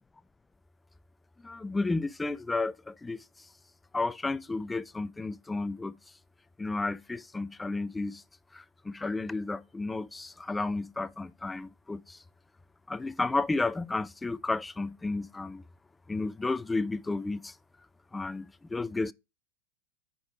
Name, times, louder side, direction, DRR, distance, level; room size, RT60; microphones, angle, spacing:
voice 1, 1.4-3.2 3.9-5.9 6.6-8.2 8.5-12.2 12.9-15.6 16.1-17.5 18.1-19.1, left 3 dB, 10° left, 0.3 m, -32 dB
9.6 x 3.8 x 4.7 m
figure-of-eight pair, 90°, 0 cm